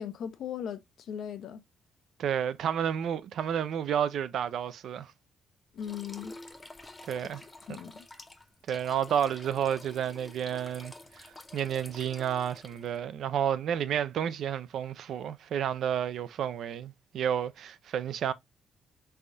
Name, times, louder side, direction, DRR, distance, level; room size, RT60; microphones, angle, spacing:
voice 1, 0.0-1.6 5.7-6.4 7.7-8.0, left 8 dB, 70° left, 0.5 m, -38 dB
voice 2, 2.2-5.1 7.1-7.4 8.7-11.3 11.5-18.3, right 9 dB, 70° right, 0.4 m, -31 dB
sound 1, 5.8-13.0, left 2 dB, 20° left, 0.6 m, -49 dB
3.4 x 3.4 x 2.5 m
cardioid pair, 90°, 0 cm